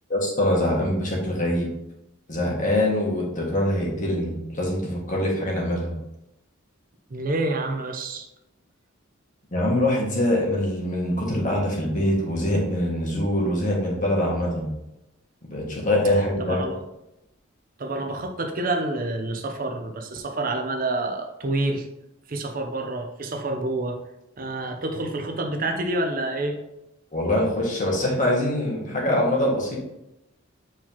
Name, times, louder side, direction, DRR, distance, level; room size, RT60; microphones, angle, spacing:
voice 1, 0.1-1.7 2.3-6.0 9.5-14.7 15.5-16.6 27.1-29.8, left 1 dB, 40° left, -3 dB, 1.7 m, -24 dB
voice 2, 7.1-8.3 16.4-16.8 17.8-21.9 22.3-24.0 24.4-26.6, right 2 dB, 45° right, 4 dB, 0.6 m, -28 dB
7.5 x 4.6 x 2.9 m, 0.87 s
head